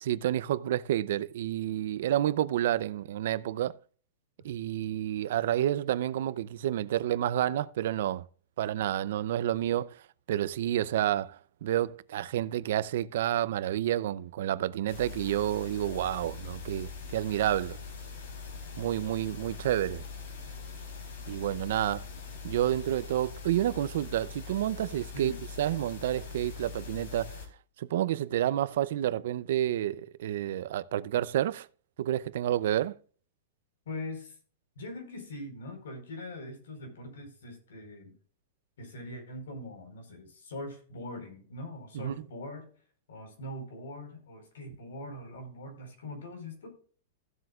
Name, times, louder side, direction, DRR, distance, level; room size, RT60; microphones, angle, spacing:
voice 1, 0.0-3.8 4.4-8.2 8.6-10.0 10.3-17.8 18.8-20.0 21.3-22.0 22.4-25.3 25.6-27.4 27.8-31.7 32.0-33.0 41.9-42.1, right 12 dB, 65° right, 0.6 m, -29 dB
sound 1, 14.9-27.5, left 5 dB, 75° left, 3.5 m, -42 dB
voice 2, 33.8-34.4 34.8-38.1 38.8-42.7 43.1-46.7, left 1 dB, 90° left, 4.5 m, -42 dB
15.5 x 7.8 x 2.4 m
supercardioid pair, 155°, 0 cm